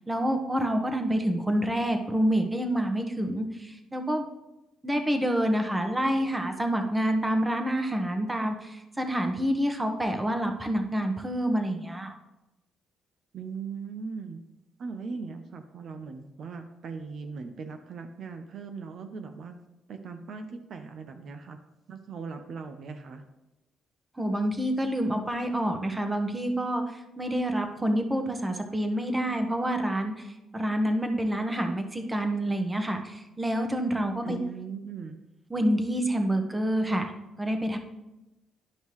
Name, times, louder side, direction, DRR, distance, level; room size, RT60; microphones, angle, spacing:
voice 1, 0.0-4.3 4.8-12.1 24.2-30.3 30.5-34.4 35.5-37.1 37.4-37.8, right 1 dB, 15° right, 5 dB, 1.0 m, -27 dB
voice 2, 13.3-14.4 14.8-19.5 19.9-21.6 21.9-23.2 34.2-35.2, right 5 dB, 60° right, 7 dB, 0.7 m, -39 dB
11.0 x 5.4 x 3.1 m, 0.97 s
cardioid pair, 90°, 0 cm